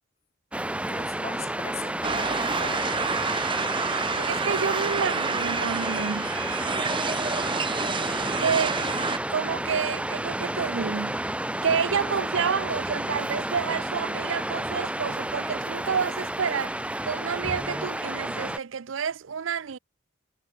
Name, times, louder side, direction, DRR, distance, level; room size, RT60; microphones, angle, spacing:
Waves surf, 0.5-18.6, right 1 dB, 5° right, 1.0 m, -31 dB
voice 1, 0.9-3.0, left 4 dB, 35° left, 2.3 m, -40 dB
sound 1, 2.0-9.2, right 4 dB, 25° right, 1.6 m, -29 dB
voice 2, 4.2-6.3 8.4-8.8 9.3-11.2 11.6-16.8 17.0-19.8, right 6 dB, 75° right, 0.6 m, -29 dB
head